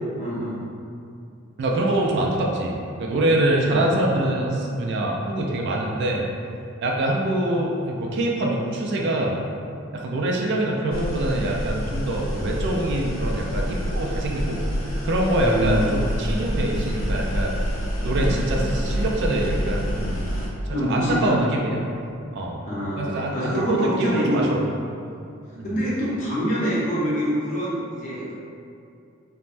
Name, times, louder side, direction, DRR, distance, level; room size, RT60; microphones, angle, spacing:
voice 1, 0.2-0.6 3.6-4.3 15.3-15.9 20.7-21.4 22.6-24.8 25.6-28.3, equal, 40° left, -9 dB, 0.8 m, -25 dB
voice 2, 1.6-6.2 6.8-9.4 9.9-14.6 15.0-17.6 18.0-20.2 20.9-21.8 22.3-22.6 23.0-24.6 25.5-25.8, right 1 dB, 60° right, -1 dB, 0.3 m, -24 dB
sound 1, 10.9-20.5, equal, 85° left, 0.5 m, -27 dB
3.2 x 2.0 x 2.5 m, 2.5 s
head